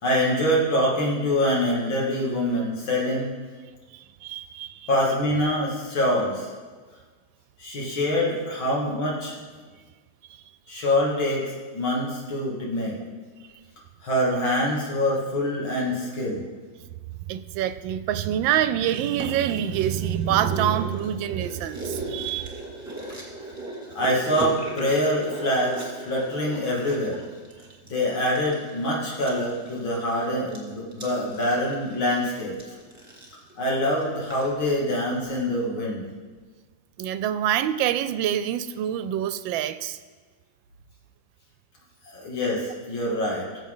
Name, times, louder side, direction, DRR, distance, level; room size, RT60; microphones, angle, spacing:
voice 1, 0.0-3.3 4.9-6.5 7.6-9.4 10.7-13.0 14.0-16.4 23.9-27.2 27.9-32.5 33.6-36.0 42.0-43.5, left 1 dB, 80° left, -4 dB, 3.3 m, -25 dB
voice 2, 4.2-4.9 17.3-22.6 37.0-40.0, right 10 dB, 80° right, 13 dB, 1.3 m, -26 dB
sound 1, 18.8-34.5 34.8-34.9, right 2 dB, 10° right, 2.2 m, -37 dB
19.5 x 7.5 x 3.7 m, 1.5 s
omnidirectional pair, 2.1 m